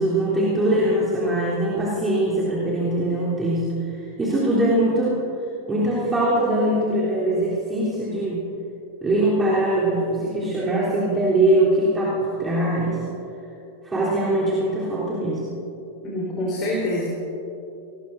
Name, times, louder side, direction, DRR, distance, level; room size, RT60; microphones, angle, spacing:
voice 1, 0.0-5.2 5.7-8.4 9.0-13.0 13.8-15.4, right 1 dB, 15° right, -9 dB, 3.7 m, -22 dB
voice 2, 16.0-17.1, left 1 dB, 35° left, -5 dB, 4.1 m, -26 dB
25.0 x 20.0 x 2.7 m, 2.8 s
figure-of-eight pair, 90°, 0 cm